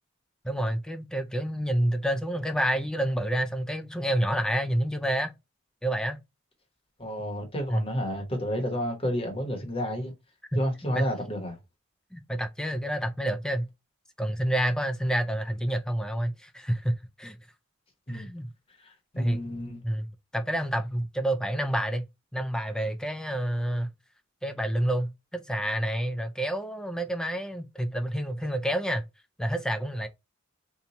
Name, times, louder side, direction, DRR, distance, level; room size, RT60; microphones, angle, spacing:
voice 1, 0.4-5.3 5.8-6.2 7.7-7.8 11.0-11.1 12.1-13.7 14.2-17.4 18.1-18.5 19.2-19.4 19.8-22.1 22.3-23.9 24.4-29.0 29.4-30.1, right 1 dB, 5° left, 0.3 m, -28 dB
voice 2, 7.0-10.1 10.5-11.6 18.1-18.3 18.8-19.8, equal, 30° left, 1.0 m, -31 dB
2.9 x 2.3 x 3.9 m
head